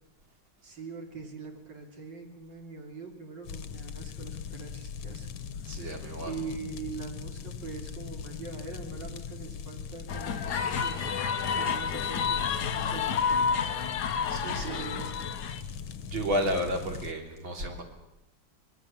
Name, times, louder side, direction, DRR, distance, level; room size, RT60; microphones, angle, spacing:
voice 1, 0.6-5.3 5.6-13.5 14.4-15.2, right 4 dB, 65° right, 2 dB, 3.9 m, -43 dB
sound 1, 3.4-17.1, left 7 dB, 90° left, 1.9 m, -40 dB
voice 2, 5.7-6.3 14.3-14.9 16.1-17.8, equal, 80° right, 2 dB, 4.1 m, -32 dB
sound 2, 10.1-15.6, left 6 dB, 60° left, 1.5 m, -30 dB
25.5 x 20.5 x 7.2 m, 0.89 s
omnidirectional pair, 2.2 m